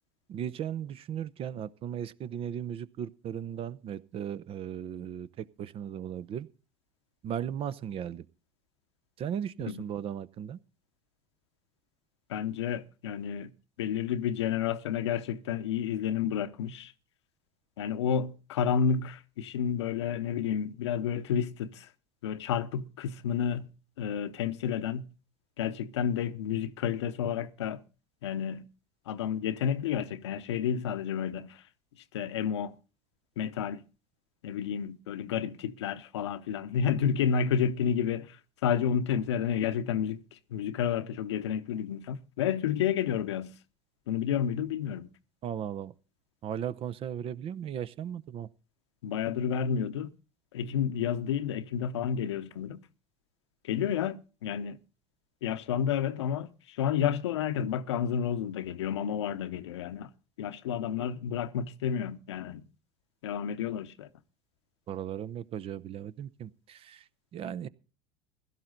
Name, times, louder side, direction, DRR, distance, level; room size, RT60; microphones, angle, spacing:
voice 1, 0.3-6.5 7.2-8.3 9.2-10.6 45.4-45.9 46.4-48.5 64.9-67.7, right 9 dB, 40° right, 0.7 m, -37 dB
voice 2, 12.3-13.5 13.8-16.9 17.8-21.9 22.2-23.7 24.0-25.0 25.6-27.8 28.2-28.7 29.1-31.6 32.1-32.7 33.4-33.8 34.4-38.4 38.6-43.5 44.1-45.1 49.0-50.1 50.5-52.8 53.6-54.8 55.4-60.1 60.4-62.6 63.2-64.1, left 8 dB, 85° left, 0.8 m, -30 dB
16.0 x 13.0 x 3.9 m
hypercardioid pair, 85°, 14 cm